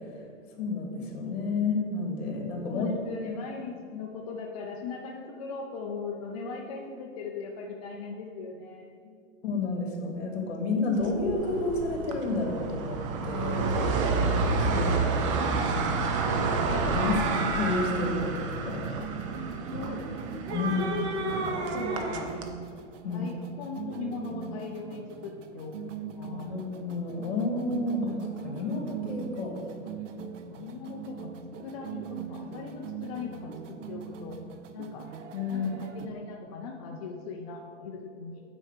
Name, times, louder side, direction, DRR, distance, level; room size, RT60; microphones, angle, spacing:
voice 1, 0.6-2.9 9.4-13.0 13.2-13.7 14.6-15.3 16.4-18.8 20.5-20.7 23.0-23.3 26.5-28.1 28.4-29.6 35.3-35.7, left 3 dB, 55° left, 1 dB, 2.3 m, -30 dB
voice 2, 2.7-9.2 19.5-20.0 20.5-22.3 23.1-25.7 26.2-26.5 30.5-31.3 31.6-34.4 34.7-35.1 35.5-38.4, left 5 dB, 30° left, 0 dB, 0.5 m, -39 dB
sound 1, 11.0-22.5, right 4 dB, 25° right, 0.5 m, -30 dB
sound 2, 16.9-17.9 20.2-22.3, right 4 dB, 60° right, 1.2 m, -34 dB
sound 3, 17.2-36.1, right 7 dB, 80° right, 0.8 m, -41 dB
8.9 x 4.5 x 6.6 m, 2.3 s
hypercardioid pair, 160°, 37 cm